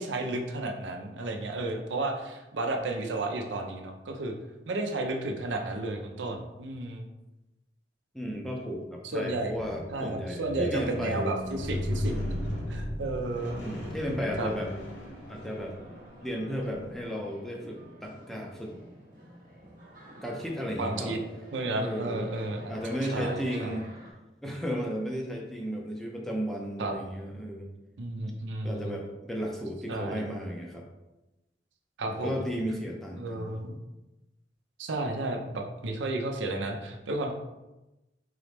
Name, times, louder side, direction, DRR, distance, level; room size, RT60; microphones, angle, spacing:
voice 1, 0.0-4.3 4.7-7.0 9.1-9.5 9.9-12.1 12.7-13.6 14.4-14.5 20.8-21.2 21.5-22.7 23.0-23.8 26.8-26.9 28.0-29.0 29.9-30.3 32.0-32.5 33.2-33.8 34.8-37.3, right 2 dB, 90° right, 3 dB, 0.6 m, -32 dB
voice 2, 8.1-11.3 12.1-12.4 13.6-14.7 15.3-15.7 16.2-18.7 20.2-21.2 21.7-22.2 22.7-23.9 24.4-27.7 28.6-30.8 32.1-33.6, equal, ahead, -1 dB, 0.5 m, -34 dB
Squeak, 9.5-15.9 16.6-16.8, left 1 dB, 75° left, 0.9 m, -36 dB
sound 1, 14.4-24.1, right 1 dB, 45° right, 1.0 m, -49 dB
3.8 x 3.0 x 3.4 m, 1.0 s
head